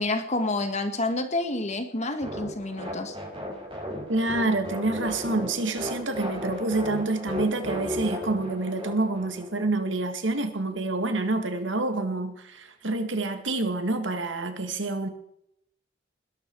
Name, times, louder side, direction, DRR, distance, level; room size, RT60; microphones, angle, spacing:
voice 1, 0.0-3.1, left 2 dB, 40° left, 1.8 m, -28 dB
sound 1, 2.2-9.7, equal, 30° right, 6.6 m, -35 dB
voice 2, 4.1-15.1, right 2 dB, 75° right, 2.1 m, -27 dB
20.5 x 12.0 x 4.7 m
head